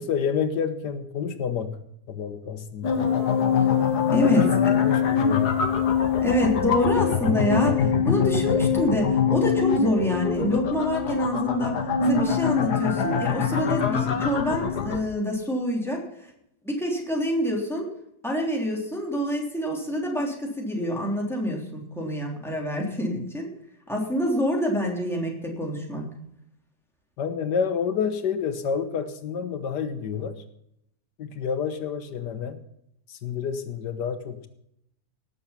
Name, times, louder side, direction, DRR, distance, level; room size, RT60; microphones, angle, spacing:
voice 1, 0.0-1.8 2.1-3.0 4.2-5.5 27.2-30.4 31.2-32.6 33.1-34.5, left 7 dB, 90° left, 9 dB, 1.7 m, -29 dB
sound 1, 2.8-15.0, left 7 dB, 70° left, 1.9 m, -23 dB
voice 2, 4.1-4.6 6.2-16.3 16.6-17.9 18.2-23.5 23.9-26.1, equal, ahead, -2 dB, 3.3 m, -26 dB
18.5 x 7.2 x 5.7 m, 0.75 s
omnidirectional pair, 1.8 m